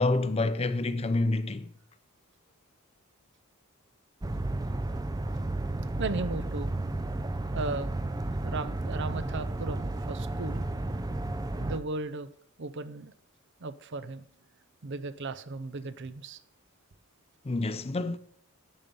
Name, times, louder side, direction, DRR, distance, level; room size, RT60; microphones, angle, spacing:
voice 1, 0.0-1.7 17.4-18.2, left 2 dB, 30° left, 0.5 m, -27 dB
sound 1, 4.2-11.8, right 2 dB, 20° right, 0.5 m, -32 dB
voice 2, 6.0-6.7 7.5-7.9 8.4-10.6 11.5-12.3 12.6-13.1 13.6-14.2 14.8-16.4, right 3 dB, 55° right, 0.7 m, -36 dB
11.0 x 7.0 x 5.4 m
head